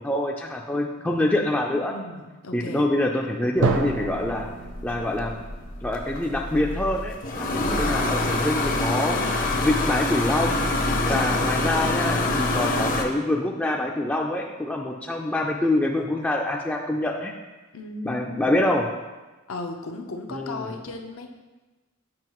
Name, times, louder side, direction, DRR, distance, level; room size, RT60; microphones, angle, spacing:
voice 1, 0.0-1.9 2.5-4.5 4.8-5.4 5.8-10.7 11.1-17.3 18.0-18.9 20.3-20.7, left 1 dB, 5° left, 0 dB, 0.3 m, -25 dB
voice 2, 1.7-2.9 7.4-8.0 17.7-18.7 19.5-21.3, left 2 dB, 80° left, 3 dB, 0.7 m, -36 dB
sound 1, 3.6-13.0, left 2 dB, 45° left, 0.7 m, -26 dB
Drum, 3.6-7.3, right 4 dB, 75° right, 0.5 m, -30 dB
7.6 x 5.5 x 3.0 m, 1.2 s
head